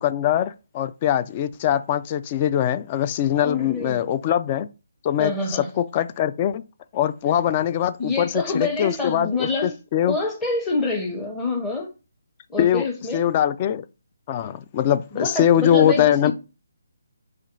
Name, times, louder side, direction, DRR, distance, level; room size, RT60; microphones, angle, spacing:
voice 1, 0.0-4.7 5.0-5.3 5.8-6.6 6.9-10.2 12.6-12.8 13.1-13.8 14.3-16.3, left 10 dB, 30° left, 0.3 m, -22 dB
voice 2, 3.3-4.0 5.2-5.7 8.0-9.8 10.1-11.9 12.5-13.4 15.1-16.3, left 3 dB, 10° left, 0.8 m, -26 dB
3.2 x 2.5 x 4.3 m
figure-of-eight pair, 155°, 0 cm